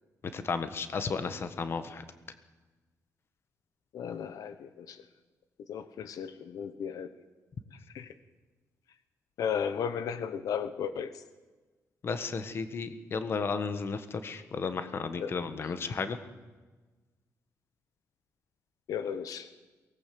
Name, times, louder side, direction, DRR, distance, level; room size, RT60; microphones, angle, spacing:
voice 1, 0.2-2.0 12.0-16.2, left 5 dB, 40° left, 10 dB, 1.5 m, -33 dB
voice 2, 3.9-5.0 5.7-7.1 7.9-8.1 9.4-11.1 15.2-15.3 18.9-19.5, left 7 dB, 75° left, 12 dB, 1.2 m, -34 dB
23.0 x 19.0 x 7.8 m, 1.3 s
wide cardioid pair, 155°, 6 cm